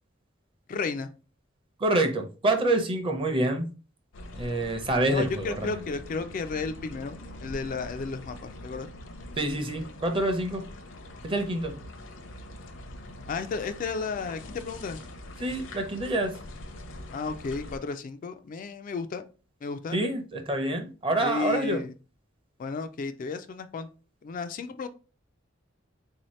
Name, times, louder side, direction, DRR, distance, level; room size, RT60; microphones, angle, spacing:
voice 1, 0.7-1.1 5.1-8.9 13.3-15.0 17.1-19.2 19.6-20.0 21.2-21.9 22.6-23.9 24.2-24.9, left 4 dB, 45° left, 9 dB, 0.3 m, -33 dB
voice 2, 1.8-3.7 4.3-5.8 9.4-10.6 11.2-11.7 15.4-16.3 19.9-21.8, right 1 dB, 25° right, 5 dB, 0.7 m, -27 dB
sound 1, 4.1-17.8, left 1 dB, 70° left, 0.7 m, -43 dB
3.9 x 2.8 x 3.1 m, 0.34 s
head